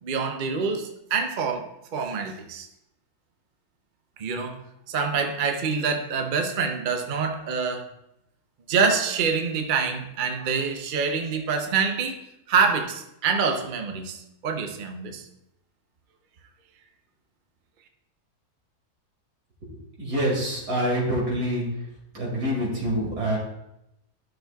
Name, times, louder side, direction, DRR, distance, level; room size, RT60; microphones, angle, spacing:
voice 1, 0.0-2.7 4.2-4.6 4.9-7.9 8.7-12.2 12.5-15.3, right 5 dB, 45° right, 5 dB, 0.7 m, -26 dB
voice 2, 20.0-21.8 22.1-23.4, equal, 80° right, -3 dB, 2.9 m, -26 dB
13.0 x 6.3 x 2.3 m, 0.83 s
omnidirectional pair, 1.7 m